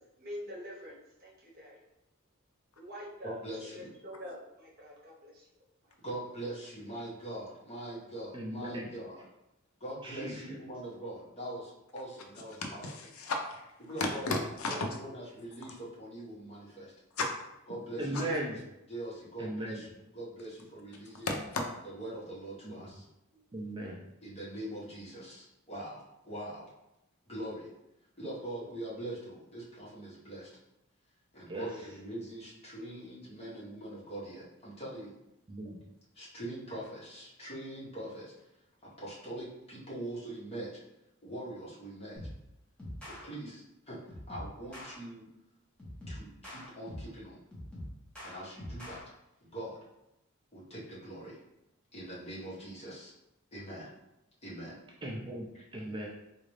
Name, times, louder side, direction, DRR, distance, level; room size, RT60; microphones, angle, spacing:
voice 1, 0.2-1.0 1.2-1.7 2.8-3.3 3.7-5.4 23.3-23.4, equal, 45° right, 1.0 m, -45 dB
voice 2, 3.2-3.9 6.0-9.2 9.8-12.9 13.8-14.3 14.7-16.9 17.7-18.3 18.9-19.9 20.1-21.3 21.8-23.0 24.2-26.7 27.3-27.7 28.2-30.5 31.3-35.1 36.1-38.3 39.0-40.7 41.2-42.2 43.0-45.2 46.1-47.4 48.2-49.0 49.4-49.8 50.5-51.4 51.9-53.1 53.5-53.9 54.4-54.8 55.5-55.6, right 1 dB, 30° left, 1.3 m, -42 dB
voice 3, 8.3-8.9 10.0-10.6 18.0-18.5 19.4-19.8 22.6-22.9 23.5-24.0 31.5-31.7 35.5-35.8 55.0-55.4 55.7-56.1, right 1 dB, 20° right, 0.4 m, -37 dB
voice 4, 12.6-13.6 14.0-14.9 18.1-18.2 21.3-21.6, left 2 dB, 75° left, 0.6 m, -34 dB
sound 1, 42.2-42.5 42.8-43.2 44.1-44.9 45.8-47.2 47.5-49.0, left 1 dB, 5° left, 1.1 m, -44 dB
3.8 x 2.5 x 3.2 m
head